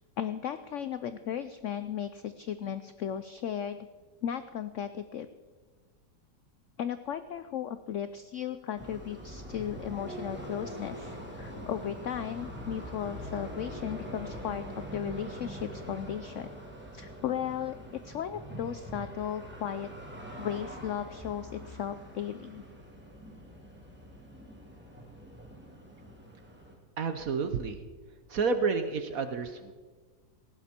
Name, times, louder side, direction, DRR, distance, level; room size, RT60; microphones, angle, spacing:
voice 1, 0.2-3.8 4.2-5.3 6.8-14.6 14.9-16.5 16.9-19.9 20.4-22.6, left 9 dB, 75° left, 12 dB, 0.7 m, -36 dB
sound 1, 8.8-26.8, right 1 dB, 5° right, 2.3 m, -43 dB
voice 2, 27.0-27.8 28.3-29.7, right 4 dB, 60° right, 9 dB, 1.2 m, -30 dB
18.5 x 15.0 x 4.3 m, 1.4 s
omnidirectional pair, 1.9 m